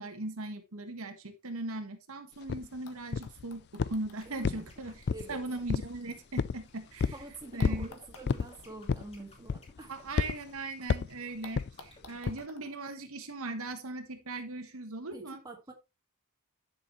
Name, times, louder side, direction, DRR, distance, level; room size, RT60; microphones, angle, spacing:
voice 1, 0.0-7.2 7.5-7.9 9.9-15.4, right 2 dB, 65° right, 1.4 m, -39 dB
sound 1, 2.4-2.5 2.9-6.9 7.6-10.5 10.8-10.9 11.4-13.8 14.8-14.9, left 3 dB, 80° left, 1.7 m, -57 dB
sound 2, 2.5-2.6 3.1-3.4 3.8-4.1 4.4-5.3 5.7-6.0 6.4-6.6 7.0-7.2 7.6-7.9 8.3-8.5 8.9-9.2 9.5-9.8 10.2-10.4 10.9-11.2 11.6-11.7 12.3-12.4, left 5 dB, 50° left, 0.3 m, -30 dB
sound 3, 4.2-12.4, left 1 dB, 25° left, 2.5 m, -58 dB
voice 2, 4.3-4.7 5.1-5.4 7.1-9.9 15.1-15.7, right 2 dB, 15° right, 1.8 m, -47 dB
11.0 x 6.5 x 3.1 m
head